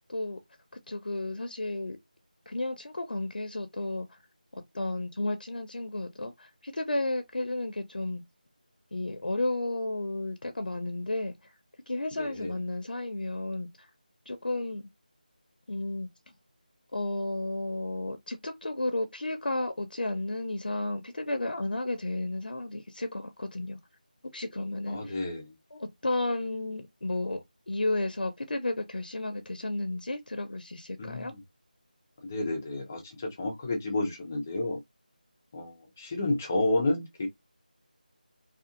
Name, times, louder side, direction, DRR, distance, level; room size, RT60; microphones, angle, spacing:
voice 1, 0.9-2.0 2.5-4.2 4.5-8.2 8.9-11.5 11.9-13.9 14.3-14.9 15.7-16.1 16.9-23.8 24.3-25.2 25.7-31.3, left 2 dB, 80° left, 0.6 m, -33 dB
voice 2, 12.2-12.5 24.9-25.5 31.0-31.4 32.2-34.8 35.5-37.3, left 2 dB, 15° left, 0.5 m, -31 dB
2.6 x 2.5 x 2.4 m
figure-of-eight pair, 175°, 5 cm